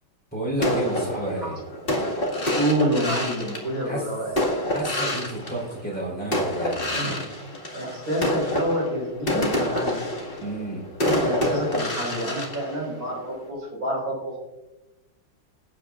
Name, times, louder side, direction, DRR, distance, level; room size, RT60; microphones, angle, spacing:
voice 1, 0.3-1.6 3.8-4.1 4.7-6.9 10.4-10.8, right 1 dB, 5° left, -5 dB, 3.9 m, -30 dB
sound 1, 0.6-6.0 6.3-13.5, left 1 dB, 25° left, 2.1 m, -27 dB
voice 2, 2.5-4.4 6.9-7.2 7.7-10.0 11.0-14.4, right 1 dB, 45° right, -2 dB, 5.4 m, -28 dB
27.5 x 9.1 x 2.5 m, 1.0 s
omnidirectional pair, 2.3 m